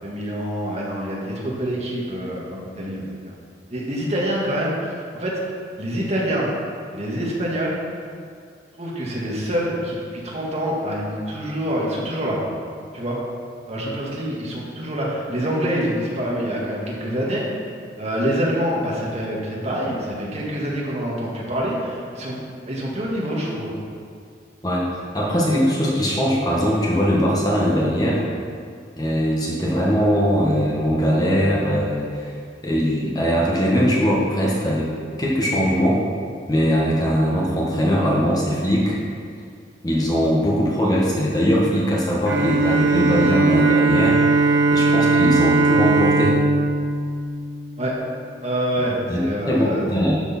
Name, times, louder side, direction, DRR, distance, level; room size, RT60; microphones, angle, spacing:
voice 1, 0.0-3.3 3.7-6.5 6.9-7.8 8.7-12.4 12.9-13.2 13.7-17.7 18.0-22.4 22.7-23.7 47.8-47.9 48.4-49.9, equal, 35° right, -4 dB, 1.9 m, -26 dB
voice 2, 25.1-28.2 29.0-32.3 32.6-34.9 35.2-36.0 36.5-39.0 39.8-46.4 49.1-50.1, equal, 20° left, -4 dB, 1.5 m, -20 dB
Bowed string instrument, 42.3-48.1, right 3 dB, 85° right, 1.0 m, -19 dB
12.5 x 6.6 x 4.4 m, 2.2 s
head